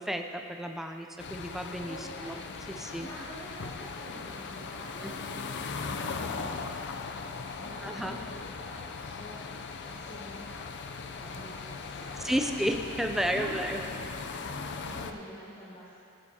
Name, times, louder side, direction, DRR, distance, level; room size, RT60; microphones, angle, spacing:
voice 1, 0.0-2.4 2.7-3.1 7.8-8.2 12.2-13.8, equal, ahead, 4 dB, 0.4 m, -32 dB
sound 1, 1.2-15.1, left 4 dB, 55° left, 0.5 m, -39 dB
voice 2, 1.9-2.4 2.8-10.6 11.0-12.7 13.3-15.9, equal, 35° left, -16 dB, 2.9 m, -47 dB
15.0 x 9.7 x 2.8 m, 2.6 s
head